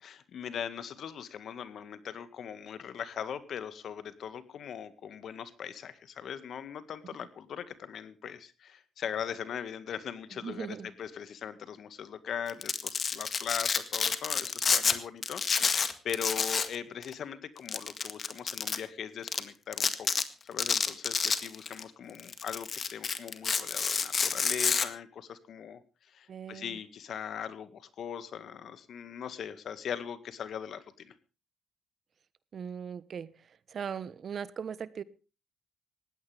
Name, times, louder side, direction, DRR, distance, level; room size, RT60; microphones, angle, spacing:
voice 1, 0.0-20.1 20.4-31.1, left 8 dB, 65° left, 1.9 m, -40 dB
voice 2, 10.4-10.9 26.3-26.8 32.5-33.3 33.7-35.0, right 7 dB, 55° right, 1.1 m, -39 dB
Domestic sounds home sounds, 12.5-15.0 15.2-16.8 17.0-17.1 17.7-18.8 19.3-19.4 19.7-20.2 20.6-21.8 22.2-24.9, left 6 dB, 45° left, 1.9 m, -29 dB
19.5 x 16.0 x 3.5 m
cardioid pair, 90°, 0 cm